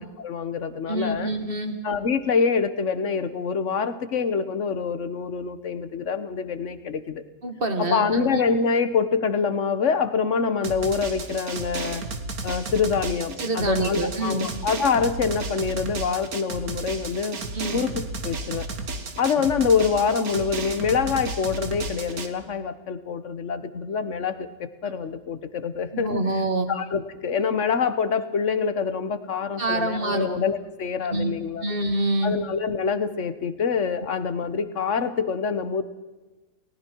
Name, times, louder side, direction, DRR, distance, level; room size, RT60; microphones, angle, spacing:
voice 1, 0.0-1.3 1.8-7.2 7.8-12.0 12.4-17.4 17.7-18.7 19.2-26.2 26.7-31.6 32.2-35.8, left 5 dB, 50° left, 12 dB, 1.4 m, -25 dB
voice 2, 0.9-1.8 7.4-8.4 13.4-14.5 17.5-17.8 25.9-26.7 29.6-30.3 31.1-31.3 31.6-32.4, right 2 dB, 35° right, 6 dB, 2.3 m, -26 dB
Drum, 10.6-22.3, right 3 dB, 70° right, 2.0 m, -33 dB
29.5 x 19.0 x 4.6 m, 1.2 s
omnidirectional pair, 1.6 m